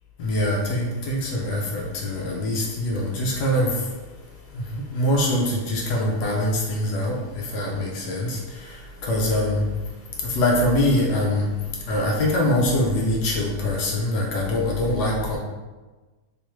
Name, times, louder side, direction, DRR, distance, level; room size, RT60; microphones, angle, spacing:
voice 1, 0.2-3.8 4.5-9.6 10.2-11.5 11.9-15.4, left 1 dB, 70° left, -2 dB, 1.0 m, -24 dB
3.4 x 3.0 x 3.0 m, 1.3 s
omnidirectional pair, 2.3 m